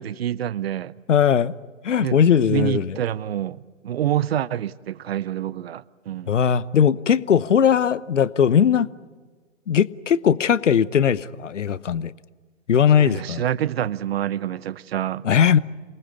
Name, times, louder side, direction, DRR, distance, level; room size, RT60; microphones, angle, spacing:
voice 1, 0.0-0.9 2.0-6.4 13.0-15.2, right 11 dB, 55° right, 0.9 m, -27 dB
voice 2, 1.1-1.5 1.8-2.9 6.3-8.9 9.7-12.1 12.7-13.4 15.2-15.6, left 8 dB, 70° left, 1.0 m, -19 dB
27.5 x 19.5 x 9.6 m
figure-of-eight pair, 125°, 37 cm